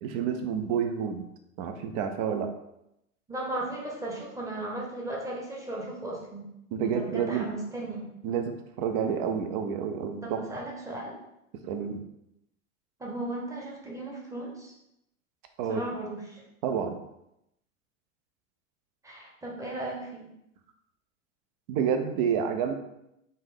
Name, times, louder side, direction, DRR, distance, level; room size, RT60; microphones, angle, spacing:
voice 1, 0.0-1.2 1.6-2.5 6.7-7.5 8.2-10.4 11.6-12.0 15.6-15.8 16.6-17.0 21.7-22.7, right 7 dB, 30° right, 6 dB, 0.4 m, -29 dB
voice 2, 3.3-6.5 6.8-8.1 10.2-11.1 13.0-14.7 15.7-16.4 19.0-20.3, right 2 dB, 10° right, -3 dB, 0.9 m, -36 dB
4.0 x 2.6 x 3.5 m, 0.83 s
figure-of-eight pair, 85°, 41 cm